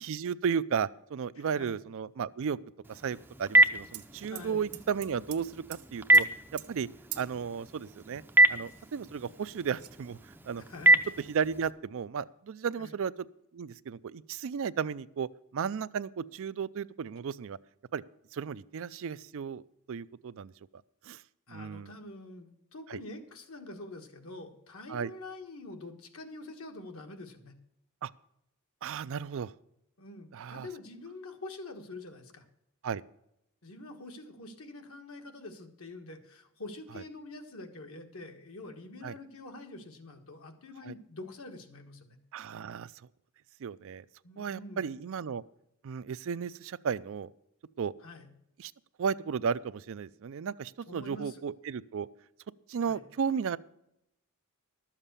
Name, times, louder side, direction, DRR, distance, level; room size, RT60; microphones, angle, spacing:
voice 1, 0.0-2.6 2.9-6.3 6.5-6.9 7.2-8.2 8.5-10.2 10.4-10.6 11.3-13.1 13.5-15.3 15.5-17.6 17.9-18.0 18.3-19.6 19.9-20.5 21.0-21.2 21.5-21.9 22.9-23.0 24.9-25.1 28.0-28.1 28.8-29.5 30.3-30.7 32.8-33.0 39.0-39.1 40.8-40.9 42.3-42.9 43.6-44.0 44.4-45.4 45.8-47.3 47.8-47.9 48.6-48.7 49.0-52.1 52.7-53.6, right 6 dB, 60° right, 17 dB, 0.4 m, -34 dB
voice 2, 1.3-1.8 4.3-4.6 10.6-11.0 12.8-13.0 21.5-27.5 30.0-32.4 33.6-42.2 44.2-45.1 48.0-48.3 50.9-51.4 52.8-53.1, left 2 dB, 65° left, 5 dB, 1.5 m, -46 dB
Telephone, 2.8-11.7, right 1 dB, 10° right, 0.5 m, -28 dB
sound 1, 3.9-4.1 4.3-5.4 5.7-5.9 6.1-6.3 6.6-6.7 7.1-7.3 8.3-8.4 8.6-9.4 9.8-9.9, right 16 dB, 85° right, 0.9 m, -43 dB
12.5 x 7.3 x 6.7 m, 0.81 s
head